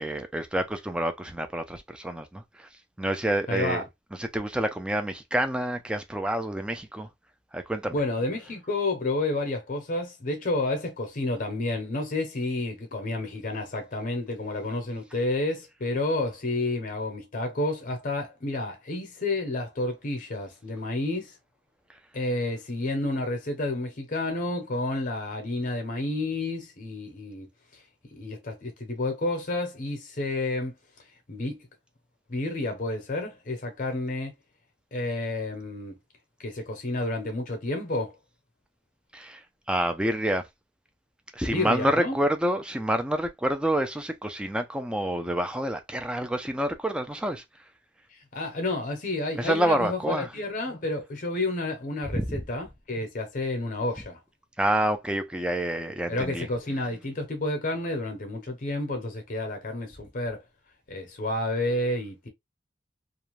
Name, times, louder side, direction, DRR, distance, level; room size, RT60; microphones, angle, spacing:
voice 1, 0.0-2.7 3.0-3.8 4.2-7.1 7.5-7.9 39.1-39.4 39.7-40.4 41.3-47.4 49.4-50.3 52.1-52.4 54.6-56.5, right 1 dB, 5° right, 0.3 m, -28 dB
voice 2, 3.5-3.9 7.9-21.4 22.1-27.8 28.1-30.8 31.3-31.7 32.3-34.3 34.9-36.0 36.4-38.2 41.5-42.2 48.1-54.2 56.1-60.4 60.9-62.3, left 2 dB, 45° left, 0.7 m, -30 dB
2.5 x 2.1 x 3.1 m
head